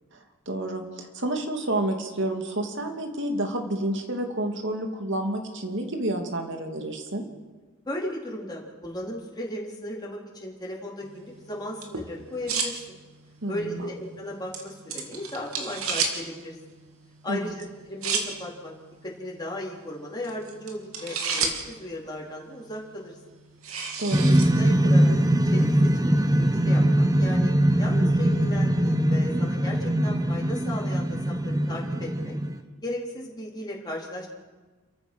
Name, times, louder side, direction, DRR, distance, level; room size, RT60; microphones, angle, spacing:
voice 1, 0.5-7.3 13.4-13.9 17.3-17.5 24.0-24.4, right 1 dB, 60° right, 4 dB, 2.7 m, -29 dB
voice 2, 7.9-12.8 13.5-16.6 17.2-17.5 17.9-18.7 19.0-23.1 24.6-25.1 25.4-27.5 27.8-32.4 32.8-34.3, left 1 dB, 20° left, -3 dB, 4.0 m, -36 dB
sound 1, 11.0-25.0, right 5 dB, 85° right, 3.0 m, -35 dB
sound 2, 24.1-32.6, right 1 dB, 15° right, 0.9 m, -22 dB
29.5 x 14.5 x 6.3 m, 1.3 s
head